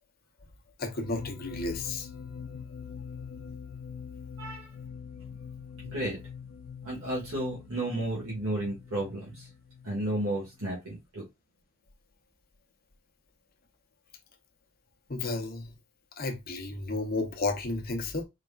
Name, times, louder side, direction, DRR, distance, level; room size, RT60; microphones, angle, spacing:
voice 1, 0.8-2.1 15.1-15.7 16.2-18.2, left 3 dB, 45° left, 0.8 m, -32 dB
sound 1, 1.0-10.7, left 7 dB, 85° left, 0.7 m, -44 dB
voice 2, 4.4-4.8 5.2-6.2 6.8-9.5 9.8-11.2, right 1 dB, 70° right, 1.9 m, -33 dB
4.6 x 3.5 x 2.4 m
head